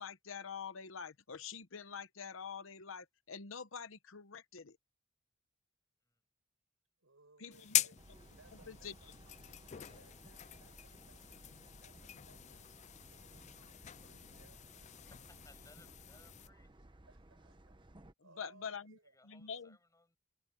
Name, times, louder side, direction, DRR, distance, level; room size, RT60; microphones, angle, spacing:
voice 1, 0.0-4.8 7.4-7.8 8.7-8.9 18.4-18.9 19.3-19.8, left 6 dB, 70° left, 0.9 m, -46 dB
voice 2, 7.0-8.1 8.4-9.1 9.7-11.5 11.8-15.2 17.1-17.8 18.2-19.1, right 3 dB, 80° right, 6.0 m, -66 dB
sound 1, 7.5-16.5, left 12 dB, 35° left, 0.4 m, -42 dB
sound 2, 8.0-18.1, right 1 dB, 25° right, 1.1 m, -59 dB
voice 3, 15.1-16.9 19.0-20.2, left 2 dB, 15° left, 6.5 m, -65 dB
head